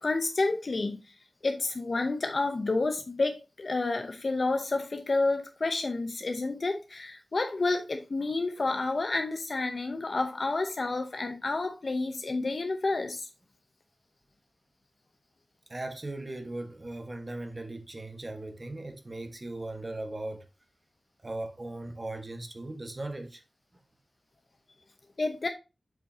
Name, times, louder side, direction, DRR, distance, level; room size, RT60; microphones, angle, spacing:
voice 1, 0.0-1.1 1.4-13.3 25.2-25.5, left 3 dB, 50° left, 0.8 m, -30 dB
voice 2, 15.7-20.4 21.2-23.4, right 2 dB, 30° right, 1.4 m, -38 dB
7.6 x 5.6 x 2.8 m
wide cardioid pair, 85°, 0 cm